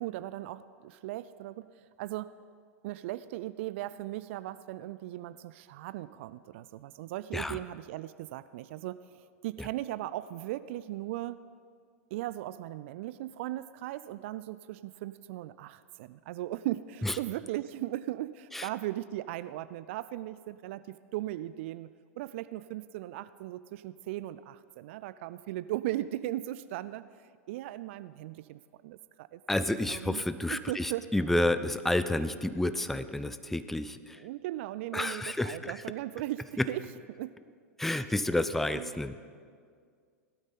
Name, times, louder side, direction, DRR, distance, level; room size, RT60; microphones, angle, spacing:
voice 1, 0.0-2.4 2.8-11.5 12.1-21.9 22.2-30.2 30.5-31.1 34.1-37.4 38.7-38.9, right 15 dB, 55° right, 16 dB, 0.3 m, -38 dB
voice 2, 29.5-34.2 34.9-35.8 36.6-36.7 37.8-39.2, left 1 dB, 5° left, 12 dB, 0.5 m, -30 dB
17.5 x 12.0 x 4.1 m, 2.1 s
figure-of-eight pair, 95°, 8 cm